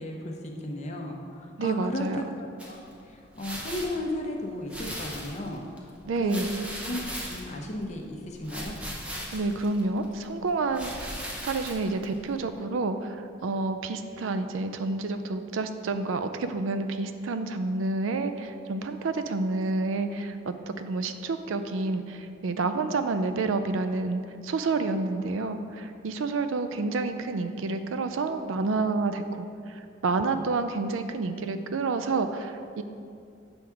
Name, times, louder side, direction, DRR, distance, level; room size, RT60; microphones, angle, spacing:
voice 1, 0.0-2.8 3.1-5.9 6.2-7.0 7.3-8.7 25.0-25.3 30.3-30.4, left 1 dB, 35° left, 1 dB, 0.7 m, -35 dB
voice 2, 1.6-2.2 6.1-6.6 9.3-11.2 11.4-32.8, right 3 dB, 85° right, 9 dB, 0.4 m, -29 dB
sound 1, 2.6-12.6, equal, 5° right, 0.6 m, -40 dB
7.8 x 3.5 x 5.7 m, 2.4 s
head